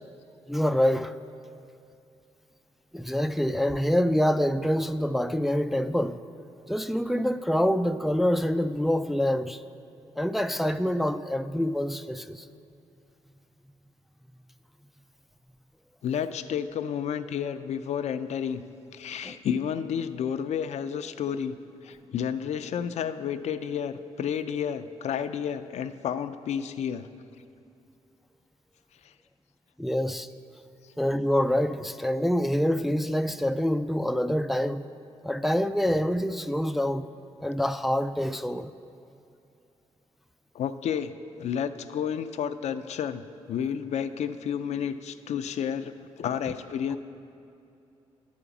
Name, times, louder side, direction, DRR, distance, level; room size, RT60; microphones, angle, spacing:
voice 1, 0.5-1.1 2.9-6.2 6.7-9.6 10.2-12.5 19.2-19.4 29.8-30.3 31.0-34.9 35.2-37.1 37.4-38.7, equal, ahead, 9 dB, 0.3 m, -26 dB
voice 2, 16.0-18.6 18.9-21.6 21.8-27.1 40.5-41.1 41.4-43.2 43.5-47.0, left 8 dB, 70° left, 10 dB, 0.4 m, -31 dB
11.0 x 5.0 x 7.0 m, 2.6 s
supercardioid pair, 55°, 12 cm